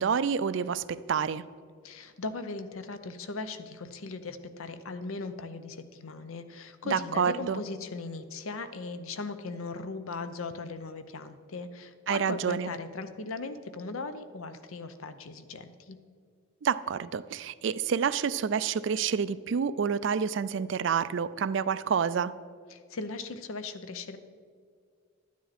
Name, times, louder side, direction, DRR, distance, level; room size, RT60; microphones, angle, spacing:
voice 1, 0.0-1.4 6.8-7.6 12.1-12.7 16.6-22.3, right 6 dB, 60° right, 16 dB, 0.4 m, -28 dB
voice 2, 1.8-16.0 22.7-24.2, left 3 dB, 85° left, 10 dB, 0.7 m, -38 dB
12.0 x 9.4 x 4.2 m, 2.1 s
head